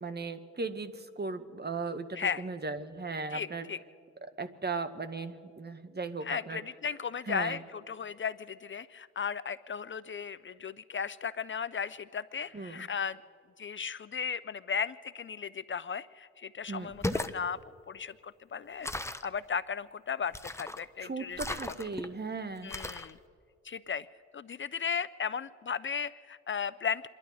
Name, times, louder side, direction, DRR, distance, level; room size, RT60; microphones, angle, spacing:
voice 1, 0.0-3.7 4.2-6.6 7.3-7.6 12.5-12.9 16.7-16.9 21.0-22.7, right 3 dB, 30° right, 10 dB, 1.7 m, -37 dB
voice 2, 3.3-3.8 6.2-13.2 13.6-17.6 17.9-18.9 19.2-21.4 21.7-21.8 22.6-23.2 23.6-24.1 24.3-27.1, left 6 dB, 40° left, 16 dB, 0.5 m, -36 dB
sound 1, 16.9-17.4 18.8-19.3 20.3-20.8 21.4-22.1 22.7-23.1, left 1 dB, 10° left, 1.1 m, -36 dB
28.5 x 11.5 x 4.2 m, 2.3 s
hypercardioid pair, 45°, 31 cm